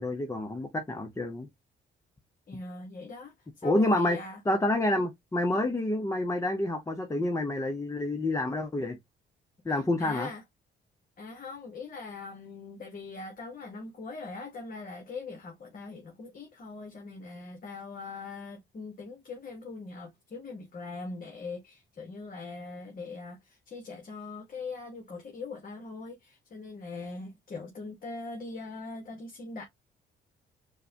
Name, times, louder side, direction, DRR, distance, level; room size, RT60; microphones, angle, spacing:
voice 1, 0.0-1.5 3.6-4.2 4.5-9.0 9.6-10.3, left 1 dB, 15° left, 0.7 m, -28 dB
voice 2, 2.5-4.4 4.9-5.1 9.7-10.4 11.2-29.6, left 3 dB, 45° left, 1.1 m, -41 dB
4.7 x 2.2 x 2.7 m
cardioid pair, 90°, 20 cm